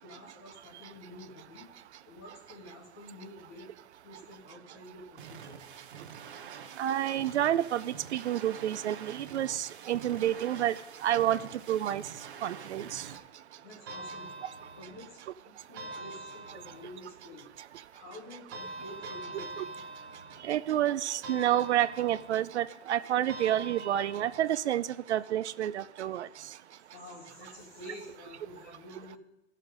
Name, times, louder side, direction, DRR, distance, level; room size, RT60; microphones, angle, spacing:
voice 1, 0.0-1.7 2.1-3.7 4.0-5.7 13.6-14.4 14.8-15.2 15.7-17.5 17.9-19.5 26.9-29.2, left 1 dB, 10° left, 1 dB, 0.5 m, -49 dB
sound 1, 5.2-13.2, right 7 dB, 45° right, 0.8 m, -47 dB
voice 2, 6.8-10.7 11.0-11.4 11.7-12.0 12.4-13.0 19.6-19.7 20.4-26.3, right 11 dB, 65° right, 16 dB, 0.5 m, -29 dB
sound 2, 13.9-15.2 15.8-17.1 18.5-20.7 21.2-22.5 23.3-24.6, right 2 dB, 20° right, 1.0 m, -44 dB
15.5 x 6.6 x 3.8 m, 0.93 s
hypercardioid pair, 180°, 37 cm